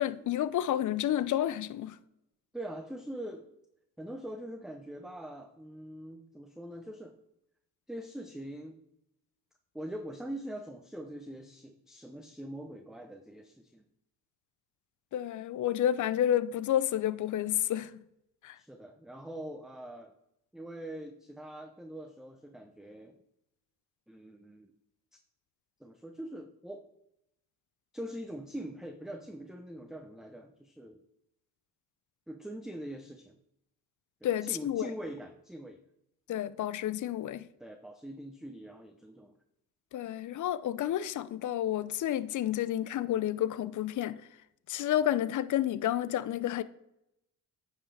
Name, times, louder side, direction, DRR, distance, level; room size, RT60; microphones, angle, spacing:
voice 1, 0.0-2.0 15.1-17.9 18.4-18.6 34.2-34.9 36.3-37.4 39.9-44.2 44.7-46.6, left 11 dB, 45° left, 0.5 m, -30 dB
voice 2, 2.5-3.5 4.0-7.1 7.9-8.8 9.7-13.8 18.6-20.1 20.5-23.2 24.1-24.7 25.8-26.9 27.9-31.0 32.3-33.4 34.2-35.8 37.6-39.4, right 1 dB, ahead, 0.7 m, -43 dB
9.6 x 5.7 x 3.3 m
supercardioid pair, 50°, 43 cm